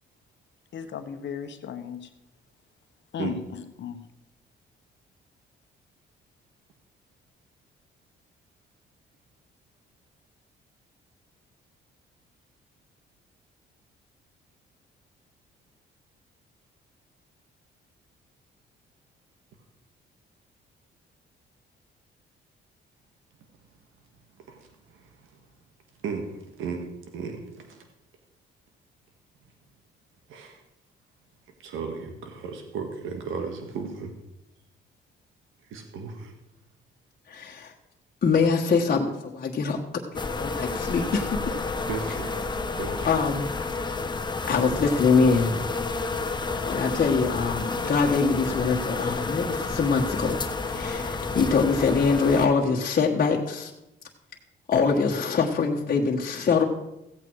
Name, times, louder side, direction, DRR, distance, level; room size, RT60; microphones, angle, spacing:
voice 1, 0.7-2.1 3.1-4.0, left 7 dB, 65° left, 8 dB, 1.2 m, -35 dB
voice 2, 24.5-25.1 26.0-26.9 27.1-27.8 30.3-30.6 31.6-34.1 35.7-36.3 41.9-42.4 42.7-43.1, right 5 dB, 85° right, 4 dB, 1.8 m, -35 dB
voice 3, 37.3-37.7 38.2-41.4 43.0-43.5 44.5-45.6 46.7-50.4 50.7-53.7 54.7-56.6, left 5 dB, 45° left, -1 dB, 1.5 m, -24 dB
sound 1, 40.1-52.5, left 3 dB, 20° left, 1.1 m, -30 dB
15.5 x 8.4 x 4.7 m, 0.89 s
cardioid pair, 90°, 20 cm